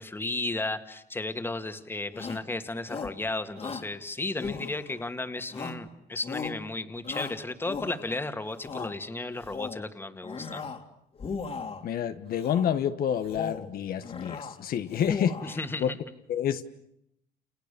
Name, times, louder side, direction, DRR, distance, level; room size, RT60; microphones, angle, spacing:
voice 1, 0.0-10.6 15.4-16.0, left 2 dB, 15° left, 8 dB, 2.2 m, -34 dB
Shout, 2.1-2.5 2.9-3.2 3.6-3.9 4.4-5.1 5.5-5.9 6.2-6.6 7.0-8.2 8.5-9.0 9.4-9.8 10.2-10.8 11.2-11.9 12.4-12.8 13.2-13.7 14.0-14.6 14.9-15.6, left 5 dB, 35° left, 2.7 m, -37 dB
voice 2, 11.8-15.9 16.3-16.6, left 9 dB, 60° left, 9 dB, 1.4 m, -29 dB
29.5 x 29.0 x 6.9 m, 0.78 s
cardioid pair, 110°, 17 cm